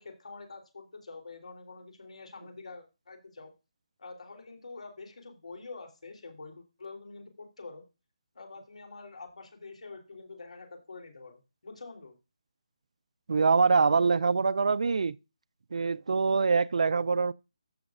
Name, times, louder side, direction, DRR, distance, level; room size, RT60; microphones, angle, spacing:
voice 1, 0.0-3.5 4.0-7.8 8.3-12.2, left 3 dB, 75° left, 3.3 m, -46 dB
voice 2, 13.3-15.2 15.7-17.3, right 4 dB, 65° right, 0.4 m, -24 dB
14.0 x 6.1 x 2.5 m
hypercardioid pair, 170°, 4 cm